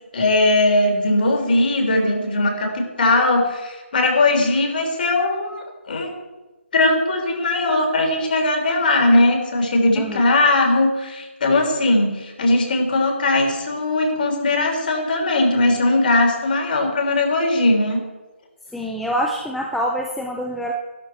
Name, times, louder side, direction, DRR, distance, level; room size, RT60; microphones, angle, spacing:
voice 1, 0.1-6.1 6.7-18.0, left 2 dB, 45° left, 2 dB, 3.4 m, -19 dB
voice 2, 18.7-20.7, equal, ahead, 0 dB, 0.4 m, -25 dB
12.5 x 12.5 x 4.6 m, 1.1 s
hypercardioid pair, 170°, 7 cm